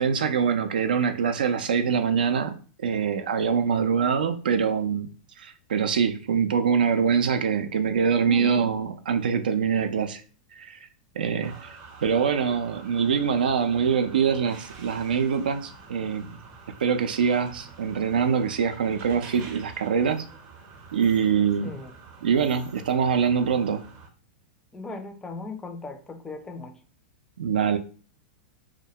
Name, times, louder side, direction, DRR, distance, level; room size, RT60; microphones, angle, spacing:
voice 1, 0.0-2.5 2.8-5.1 5.4-10.2 10.6-10.8 11.2-11.7 12.0-16.4 16.8-20.2 20.9-21.7 22.2-23.8 27.4-27.8, right 6 dB, 85° right, 8 dB, 0.3 m, -24 dB
voice 2, 8.3-8.7 21.4-21.9 24.7-26.8, left 2 dB, 10° left, 7 dB, 0.4 m, -37 dB
sound 1, 11.4-24.1, right 4 dB, 40° right, 0.6 m, -47 dB
2.2 x 2.1 x 2.7 m, 0.39 s
hypercardioid pair, 125°, 5 cm